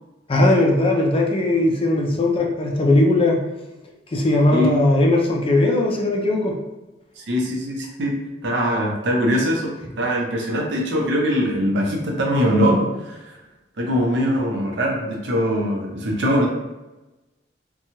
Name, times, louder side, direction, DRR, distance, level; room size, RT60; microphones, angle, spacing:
voice 1, 0.3-3.4 4.1-6.6, left 2 dB, 30° left, 0 dB, 0.4 m, -18 dB
voice 2, 7.2-13.2 13.8-16.5, equal, 70° right, 0 dB, 0.6 m, -22 dB
2.9 x 2.2 x 2.7 m, 1.0 s
head